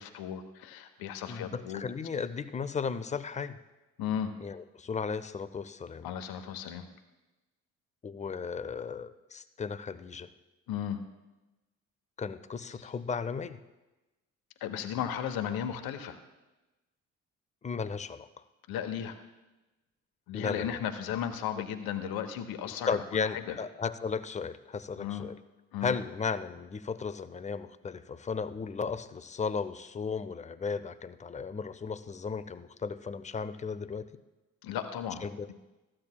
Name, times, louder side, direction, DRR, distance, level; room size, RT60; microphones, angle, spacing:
voice 1, 0.0-1.8 4.0-4.3 6.0-6.9 10.7-11.0 14.6-16.2 18.7-19.1 20.3-23.6 25.0-25.3 25.7-25.9 34.6-35.2, left 9 dB, 60° left, 7 dB, 1.0 m, -35 dB
voice 2, 1.3-3.6 4.4-6.1 8.0-10.3 12.2-13.6 17.6-18.4 20.3-20.8 22.9-25.4 25.8-34.1 35.2-35.5, left 5 dB, 20° left, 13 dB, 0.5 m, -35 dB
15.0 x 8.7 x 2.2 m, 1.1 s
figure-of-eight pair, 40°, 41 cm